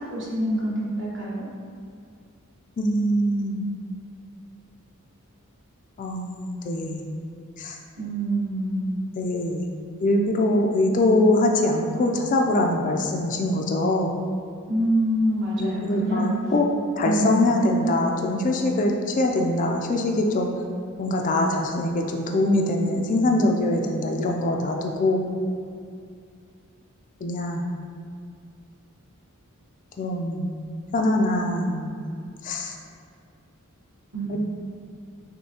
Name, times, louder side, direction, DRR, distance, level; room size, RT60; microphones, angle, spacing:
voice 1, 0.0-1.5 8.0-8.9 14.7-16.5 17.0-17.4 34.1-34.4, right 1 dB, 60° right, -7 dB, 1.2 m, -25 dB
voice 2, 2.8-3.6 6.0-7.0 7.6-7.8 9.2-9.7 10.0-14.1 15.6-16.6 17.0-20.5 21.0-25.2 27.2-27.6 30.0-30.6 30.9-32.0 32.4-32.7 34.3-34.4, left 1 dB, 40° left, 1 dB, 0.3 m, -23 dB
6.3 x 2.6 x 2.8 m, 2.3 s
head